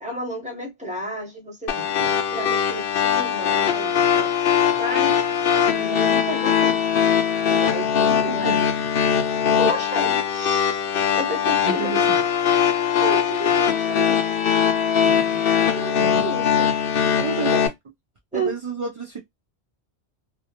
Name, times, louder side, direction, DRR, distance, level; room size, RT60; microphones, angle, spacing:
voice 1, 0.0-1.7 2.0-4.3 4.7-5.2 5.5-6.8 7.5-8.7 9.5-10.8 11.1-12.1 13.0-14.2 15.7-16.7 17.4-17.6 18.3-18.5, right 1 dB, 5° right, 0.9 m, -32 dB
sound 1, 1.7-17.7, left 8 dB, 65° left, 0.7 m, -21 dB
voice 2, 1.8-2.1 8.3-8.6 11.6-12.0 15.0-15.4 16.0-16.3 17.2-17.6 18.3-19.2, right 5 dB, 45° right, 0.4 m, -31 dB
2.3 x 2.1 x 2.8 m
omnidirectional pair, 1.1 m